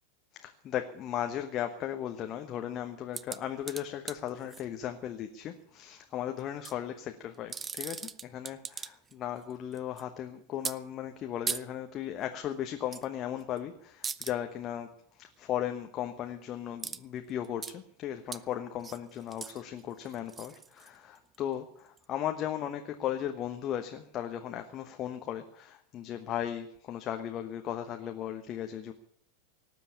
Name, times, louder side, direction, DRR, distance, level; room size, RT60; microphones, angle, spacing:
voice 1, 0.3-14.9 15.2-28.9, left 10 dB, 30° left, 6 dB, 1.1 m, -36 dB
sound 1, 3.1-4.6 6.4-6.7 7.3-9.1 9.4-10.0 10.6-10.8 11.5-11.6 12.9-13.1 13.4-13.6 14.0-14.3 16.8-17.0 17.3-17.7 18.3-18.4 18.8-21.4 22.0-22.1, right 5 dB, 20° right, 0.6 m, -39 dB
18.5 x 7.6 x 10.0 m, 0.70 s
figure-of-eight pair, 90°, 0 cm